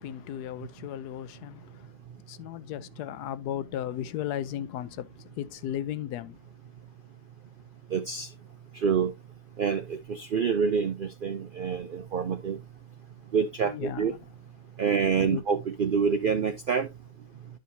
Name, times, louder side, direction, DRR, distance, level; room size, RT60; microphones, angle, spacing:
voice 1, 0.0-1.9 2.3-6.4 13.6-14.1 15.2-15.4, left 11 dB, 90° left, 1.2 m, -35 dB
voice 2, 7.9-8.3 8.8-9.1 9.6-12.6 13.3-14.1 14.8-16.9, right 6 dB, 75° right, 0.4 m, -27 dB
11.0 x 5.1 x 2.7 m
omnidirectional pair, 1.6 m